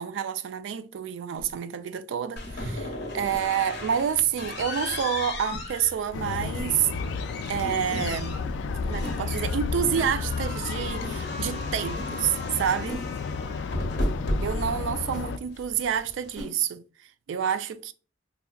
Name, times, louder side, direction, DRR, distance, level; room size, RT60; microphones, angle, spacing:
voice 1, 0.0-6.9 7.5-8.4 8.8-13.0 14.4-16.8 17.3-17.9, right 8 dB, 80° right, 0.3 m, -28 dB
sound 1, 1.3-1.5 2.4-2.6 3.3-3.5 4.4-4.5 5.5-5.7 6.5-6.7 7.9-8.1 9.0-9.2 9.9-10.1 11.0-11.2 11.9-12.1 12.9-13.1 14.0-14.2 15.1-15.3 16.3-16.5, equal, 20° right, 1.0 m, -38 dB
sound 2, 2.4-16.4, left 1 dB, 60° left, 0.8 m, -35 dB
sound 3, 6.1-15.4, left 5 dB, 75° left, 0.3 m, -32 dB
4.4 x 2.7 x 2.3 m
head